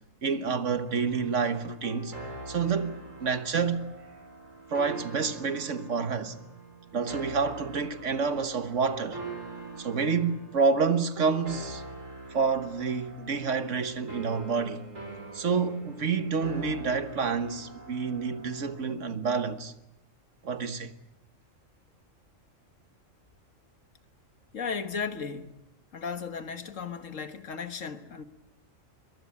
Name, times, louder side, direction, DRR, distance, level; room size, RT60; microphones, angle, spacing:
voice 1, 0.2-2.1 2.5-3.9 4.7-6.3 6.9-9.2 9.8-11.8 12.3-14.8 15.3-19.7 20.4-20.9, right 5 dB, 70° right, 1.6 m, -28 dB
sound 1, 0.8-18.8, right 3 dB, 85° right, 6.4 m, -43 dB
voice 2, 24.5-25.6 25.9-28.2, left 6 dB, 75° left, 1.9 m, -35 dB
22.5 x 22.5 x 8.6 m
omnidirectional pair, 1.3 m